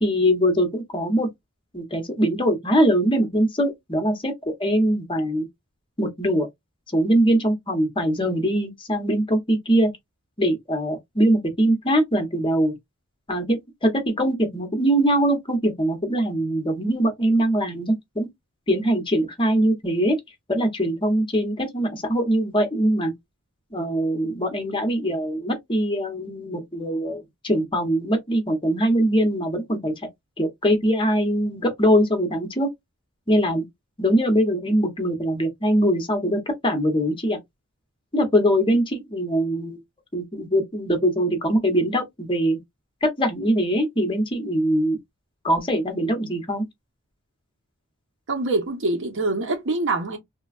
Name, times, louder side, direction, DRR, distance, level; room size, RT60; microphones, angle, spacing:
voice 1, 0.0-1.3 1.7-4.3 4.6-5.5 6.0-6.5 6.9-9.9 10.4-12.8 13.3-18.3 18.7-20.2 20.5-23.1 23.7-29.9 30.4-32.7 33.3-33.6 34.0-37.4 38.1-39.8 40.1-42.6 43.0-45.0 45.4-46.6, equal, 25° left, 0.9 m, -22 dB
voice 2, 48.3-50.2, right 2 dB, 60° right, 0.9 m, -24 dB
3.2 x 2.3 x 2.3 m
head